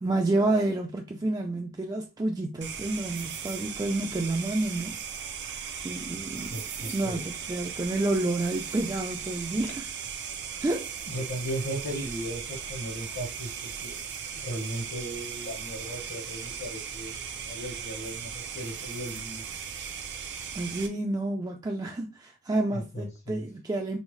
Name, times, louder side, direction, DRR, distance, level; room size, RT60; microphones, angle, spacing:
voice 1, 0.0-5.0 5.8-6.5 6.8-9.9 10.6-10.9 20.5-24.0, right 2 dB, 20° right, 0.3 m, -29 dB
sound 1, 2.6-20.9, right 7 dB, 55° right, 0.6 m, -37 dB
voice 2, 6.5-7.2 11.1-14.0 14.3-19.4 22.7-23.4, right 1 dB, 55° left, 1.1 m, -36 dB
5.4 x 2.0 x 3.1 m
head